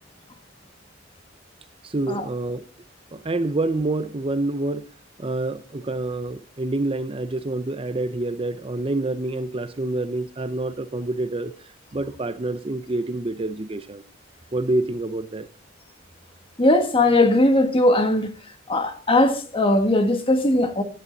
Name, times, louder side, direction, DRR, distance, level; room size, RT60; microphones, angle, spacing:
voice 1, 1.8-2.7 3.1-4.8 5.2-14.0 14.5-15.5, right 2 dB, 30° right, 0.7 m, -27 dB
voice 2, 16.6-18.3 18.7-20.8, left 1 dB, 30° left, 1.7 m, -19 dB
16.0 x 11.0 x 4.1 m
head